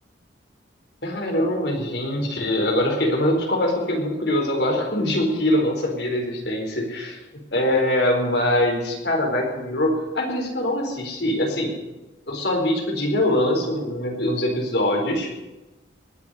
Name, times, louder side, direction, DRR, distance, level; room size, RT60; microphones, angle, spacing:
voice 1, 1.0-7.2 7.5-11.7 12.3-15.3, left 1 dB, 65° left, 1 dB, 4.3 m, -23 dB
20.0 x 7.2 x 9.8 m, 1.1 s
head